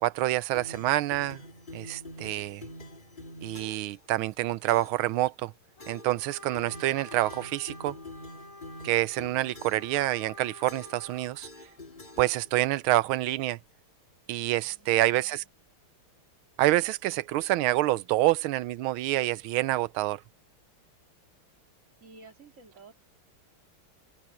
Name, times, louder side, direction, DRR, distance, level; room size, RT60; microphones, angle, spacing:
voice 1, 0.0-1.4 1.7-2.6 3.4-5.5 5.9-8.0 8.8-11.5 12.2-13.6 14.3-15.4 16.6-20.2, right 16 dB, 80° right, 1.4 m, -27 dB
sound 1, 0.5-4.0 4.7-5.1 5.8-6.2 6.5-10.0 10.7-11.1 11.4-12.8, left 1 dB, 25° left, 2.0 m, -46 dB
Trumpet, 5.8-11.4, left 1 dB, 75° left, 8.1 m, -49 dB
voice 2, 14.6-15.5 22.0-22.9, right 4 dB, 35° right, 3.1 m, -53 dB
open air
omnidirectional pair, 2.4 m